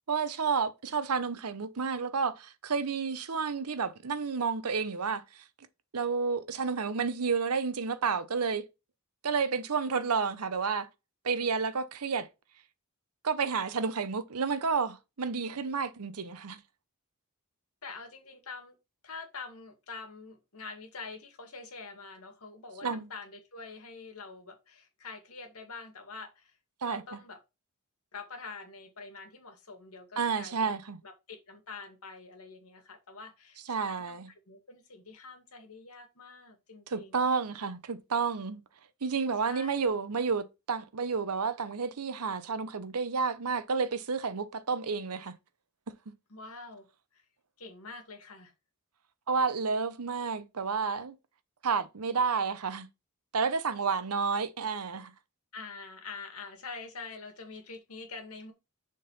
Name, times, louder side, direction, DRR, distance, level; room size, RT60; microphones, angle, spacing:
voice 1, 0.1-5.4 5.9-8.6 9.2-10.9 11.2-12.3 13.2-16.6 22.8-23.1 26.8-27.0 30.2-31.0 33.7-34.3 36.9-38.6 39.0-45.3 49.3-51.1 51.6-52.9 53.3-55.1, right 5 dB, 80° right, 0.8 m, -30 dB
voice 2, 17.8-18.8 19.0-26.6 26.8-27.4 28.1-30.7 31.0-37.3 39.4-39.8 46.3-46.9 47.1-47.2 47.6-48.5 54.3-54.4 55.5-58.5, left 4 dB, 75° left, 2.0 m, -45 dB
6.7 x 3.8 x 5.4 m
head